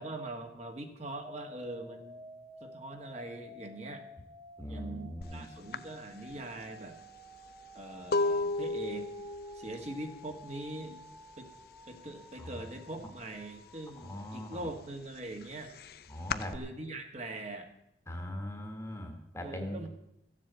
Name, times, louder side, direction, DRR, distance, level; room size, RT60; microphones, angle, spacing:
voice 1, 0.0-2.3 2.6-4.1 4.7-7.0 7.7-9.1 9.5-11.0 11.4-11.5 11.9-15.7 16.5-17.7 19.4-19.9, right 2 dB, 35° right, 4 dB, 1.6 m, -42 dB
sound 1, 1.2-14.1, equal, 10° right, 1.1 m, -53 dB
voice 2, 4.6-5.5 12.4-12.5 14.0-14.6 16.1-16.6 18.1-19.8, left 1 dB, 15° left, 5 dB, 1.5 m, -40 dB
sound 2, 5.2-5.4 5.7-11.4 11.7-12.2 12.5-13.6 14.0-16.6, left 3 dB, 55° left, 0.5 m, -35 dB
14.5 x 7.5 x 8.1 m, 0.79 s
head